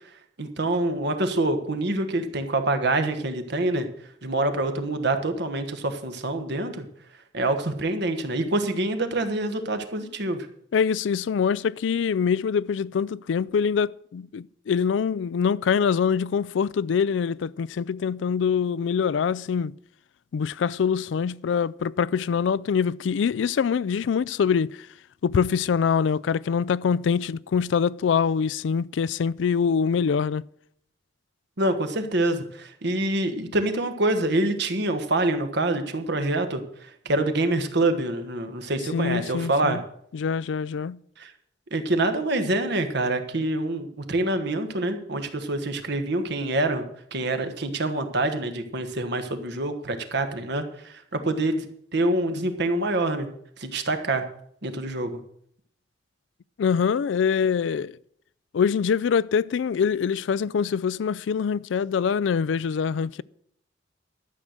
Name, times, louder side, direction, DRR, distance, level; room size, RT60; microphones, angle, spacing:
voice 1, 0.4-3.9 4.2-6.9 7.3-10.5 31.6-39.8 41.2-41.3 41.7-46.9 47.1-51.7 51.9-53.3 53.6-54.2 54.6-55.2, right 2 dB, 65° right, 1.4 m, -26 dB
voice 2, 10.7-19.7 20.3-24.8 25.2-30.4 38.9-39.8 40.1-41.0 56.6-57.9 58.5-63.2, left 6 dB, 75° left, 0.4 m, -24 dB
12.5 x 6.6 x 7.6 m
head